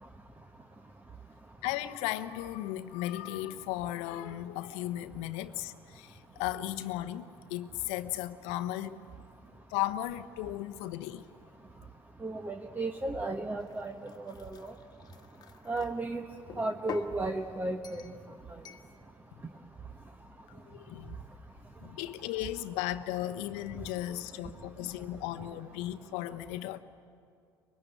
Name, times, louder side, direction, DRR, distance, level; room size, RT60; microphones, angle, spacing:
voice 1, 1.6-9.0 9.7-11.3 20.5-21.2 21.8-26.8, left 14 dB, 65° left, 1.0 m, -36 dB
voice 2, 12.2-14.7 15.6-16.2 16.5-18.1, right 2 dB, 15° right, 1.4 m, -34 dB
sound 1, 13.6-15.9 16.5-17.2 17.8-18.2 18.6-18.9, left 6 dB, 35° left, 1.6 m, -46 dB
24.0 x 21.5 x 9.1 m
hypercardioid pair, 70°, 12 cm